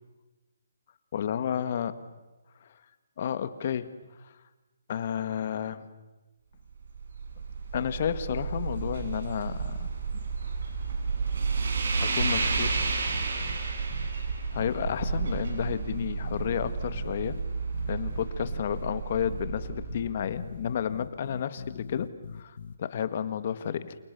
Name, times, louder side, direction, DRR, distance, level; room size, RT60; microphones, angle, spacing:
voice 1, 1.1-2.0 2.6-2.7 3.2-3.9 4.2-4.3 4.9-5.9 7.7-9.9 10.1-10.2 12.0-12.8 14.5-17.4 17.9-24.0, left 8 dB, 45° left, 13 dB, 1.9 m, -31 dB
sound 1, 6.7-20.9, right 4 dB, 65° right, 6.9 m, -31 dB
sound 2, 12.4-13.6 13.9-14.1 14.6-17.4 17.7-18.9 19.2-19.4 19.9-22.8, left 5 dB, 65° left, 1.6 m, -41 dB
29.5 x 28.5 x 7.0 m, 1.1 s
hypercardioid pair, 155°, 0 cm